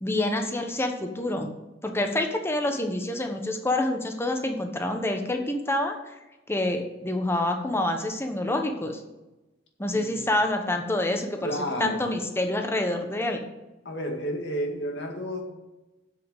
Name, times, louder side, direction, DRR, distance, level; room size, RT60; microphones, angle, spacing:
voice 1, 0.0-1.5 1.8-5.9 6.5-9.0 9.8-13.4, left 1 dB, 15° left, 4 dB, 1.1 m, -27 dB
voice 2, 9.9-10.3 11.4-12.2 13.9-15.4, equal, 65° left, 2 dB, 2.1 m, -31 dB
7.9 x 6.5 x 8.0 m, 1.0 s
head